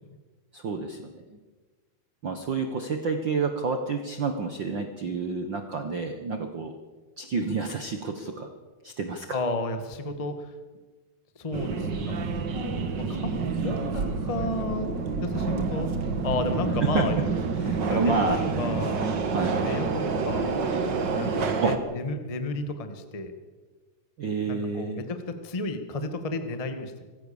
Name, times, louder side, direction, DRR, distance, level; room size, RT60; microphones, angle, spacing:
voice 1, 0.5-1.2 2.2-6.7 7.2-8.5 8.8-9.4 16.8-17.1 17.6-18.4 19.3-19.6 21.6-21.8 24.2-25.0, right 4 dB, 85° right, 6 dB, 1.0 m, -29 dB
voice 2, 9.3-10.6 11.3-12.1 12.9-14.9 15.2-15.9 16.2-17.2 17.9-19.0 19.5-20.6 21.2-23.3 24.5-27.1, left 2 dB, 50° left, 7 dB, 0.4 m, -32 dB
Subway metro underground, 11.5-21.8, right 4 dB, 45° right, 1.5 m, -28 dB
26.0 x 15.5 x 7.1 m, 1.3 s
omnidirectional pair, 4.2 m